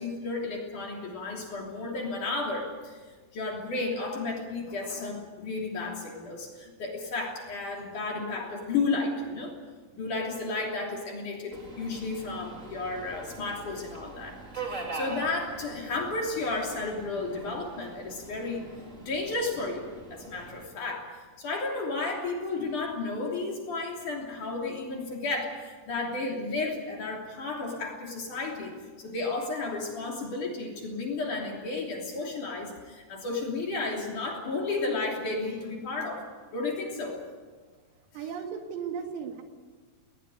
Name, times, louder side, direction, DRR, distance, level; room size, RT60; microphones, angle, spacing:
voice 1, 0.0-3.0 3.3-9.5 9.9-18.6 19.0-19.8 20.1-21.1 21.4-36.2 36.5-37.2, left 3 dB, 45° left, 0 dB, 4.1 m, -33 dB
Subway metro underground, 11.5-20.7, right 3 dB, 25° right, 1.6 m, -43 dB
voice 2, 38.1-39.4, right 7 dB, 80° right, 4 dB, 4.8 m, -36 dB
20.0 x 19.5 x 9.2 m, 1.4 s
omnidirectional pair, 5.8 m